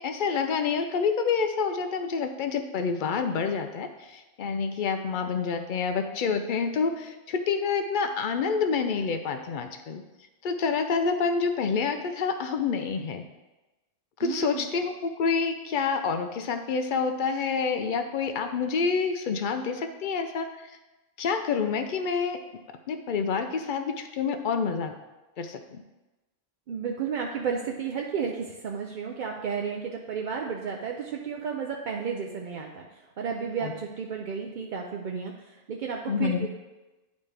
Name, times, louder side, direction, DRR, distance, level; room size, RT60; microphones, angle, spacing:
voice 1, 0.0-10.0 10.4-13.2 14.2-20.5 21.2-22.4 22.9-24.9 25.4-25.8 33.6-33.7 36.1-36.5, left 5 dB, 60° left, 7 dB, 0.5 m, -28 dB
voice 2, 14.2-14.7 26.7-32.9 33.2-35.3 35.7-36.5, right 6 dB, 60° right, 1 dB, 0.5 m, -32 dB
10.5 x 4.2 x 3.3 m, 1.1 s
omnidirectional pair, 1.3 m